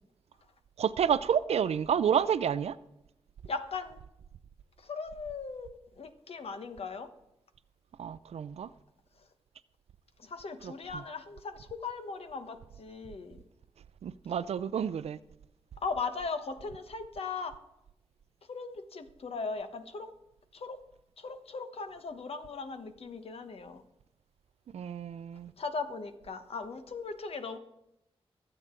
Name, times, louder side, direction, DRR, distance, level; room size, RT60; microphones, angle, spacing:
voice 1, 0.8-2.8 8.0-8.7 10.6-11.0 14.0-15.2 24.7-25.5, right 8 dB, 90° right, 0.4 m, -30 dB
voice 2, 3.5-4.0 4.8-5.7 6.0-7.1 10.2-13.4 15.8-17.5 18.5-20.1 20.5-20.8 21.2-23.8 25.6-27.6, left 4 dB, 70° left, 1.2 m, -38 dB
22.5 x 7.9 x 3.8 m
wide cardioid pair, 80°, 10 cm